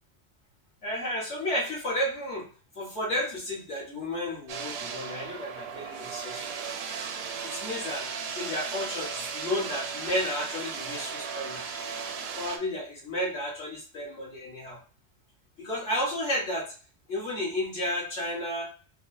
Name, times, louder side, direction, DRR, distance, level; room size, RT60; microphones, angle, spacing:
voice 1, 0.8-2.4 2.8-6.5 7.4-8.0 8.4-11.7 12.4-14.8 15.6-16.7 17.1-18.7, left 1 dB, 70° left, -5 dB, 1.8 m, -32 dB
sound 1, 4.5-12.6, right 6 dB, 65° right, 0.7 m, -36 dB
4.5 x 2.1 x 2.7 m, 0.39 s
omnidirectional pair, 1.2 m